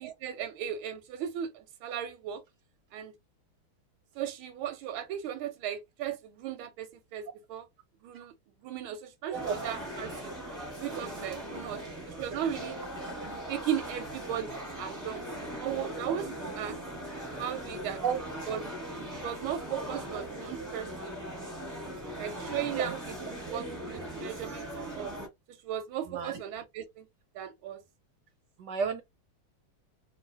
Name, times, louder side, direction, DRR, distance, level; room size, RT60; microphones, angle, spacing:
voice 1, 0.0-2.4 2.9-3.1 4.2-7.7 8.0-8.3 8.6-10.3 10.8-12.8 13.5-15.3 15.6-16.8 17.4-18.0 18.5-18.6 19.2-21.2 22.2-23.0 23.5-25.1 25.5-27.1 27.3-27.8, right 9 dB, 90° right, 1.4 m, -36 dB
sound 1, 9.3-25.3, right 1 dB, 10° right, 1.1 m, -39 dB
voice 2, 26.0-26.4 28.6-29.0, right 6 dB, 70° right, 1.1 m, -31 dB
3.1 x 2.7 x 2.4 m
omnidirectional pair, 2.3 m